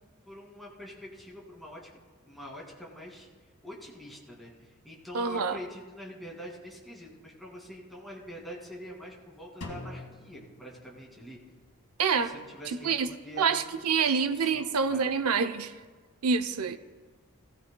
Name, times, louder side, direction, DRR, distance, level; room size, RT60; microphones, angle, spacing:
voice 1, 0.0-1.9 2.2-3.3 3.6-11.4 12.2-15.0, equal, ahead, 2.2 m, -45 dB
voice 2, 5.1-5.6 12.0-12.3 12.7-13.1 13.4-15.7 16.2-16.8, right 5 dB, 85° right, 0.6 m, -27 dB
Drum, 9.6-11.5, left 1 dB, 80° left, 1.8 m, -44 dB
19.0 x 15.5 x 2.2 m
head